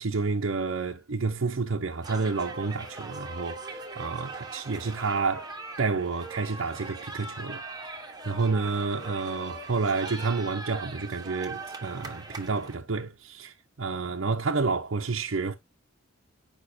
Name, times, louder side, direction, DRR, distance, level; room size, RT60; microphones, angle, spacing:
voice 1, 0.0-5.5 5.8-8.0 8.2-15.6, right 4 dB, 65° right, 0.7 m, -30 dB
sound 1, 2.0-12.7, right 3 dB, 20° right, 1.2 m, -40 dB
8.5 x 5.3 x 2.7 m
head